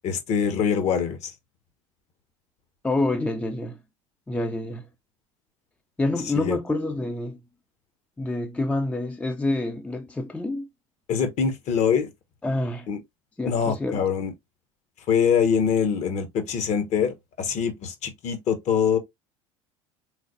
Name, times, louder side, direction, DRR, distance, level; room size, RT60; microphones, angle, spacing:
voice 1, 0.0-1.3 6.3-6.6 11.1-12.1 12.9-13.0 13.5-14.3 15.1-19.0, left 7 dB, 40° left, 0.9 m, -24 dB
voice 2, 2.8-3.8 4.3-4.8 6.0-7.4 8.2-10.7 12.4-12.9 13.4-14.1, left 2 dB, 5° left, 0.5 m, -27 dB
3.8 x 3.3 x 2.5 m
figure-of-eight pair, 70°, 17 cm